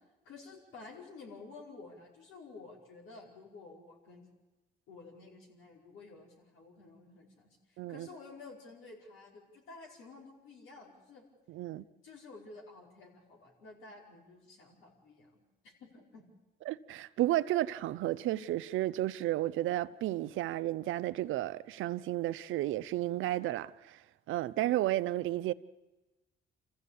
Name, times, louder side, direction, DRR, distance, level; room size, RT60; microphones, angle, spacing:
voice 1, 0.2-4.3 4.9-11.2 12.0-16.2, left 3 dB, 85° left, 5.2 m, -52 dB
voice 2, 7.8-8.1 11.5-11.8 16.7-24.0 24.3-25.5, right 15 dB, 85° right, 0.7 m, -32 dB
27.0 x 15.0 x 8.5 m
cardioid pair, 90°, 20 cm